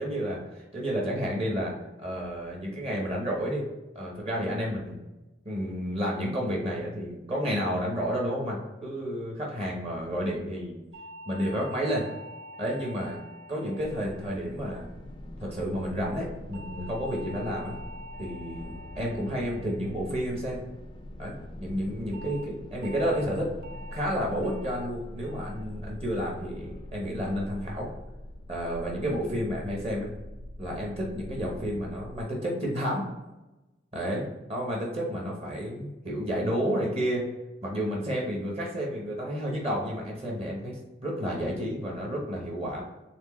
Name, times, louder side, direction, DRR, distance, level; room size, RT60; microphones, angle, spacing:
voice 1, 0.0-1.7 2.0-3.7 3.9-5.0 5.4-10.8 11.3-12.1 12.6-13.2 13.5-14.9 15.4-17.8 18.2-20.6 21.2-23.5 23.9-27.9 28.5-30.1 30.6-33.1 33.9-37.2 37.6-42.8, equal, 35° right, -2 dB, 0.8 m, -31 dB
sound 1, 10.9-15.4 16.5-21.0 22.1-22.4 22.8-23.2 23.6-24.0 24.4-24.8 25.2-25.6 26.0-26.4, equal, 50° right, 0.5 m, -47 dB
sound 2, 13.8-32.2, left 1 dB, 25° left, 0.3 m, -43 dB
4.3 x 3.3 x 3.0 m, 1.0 s
head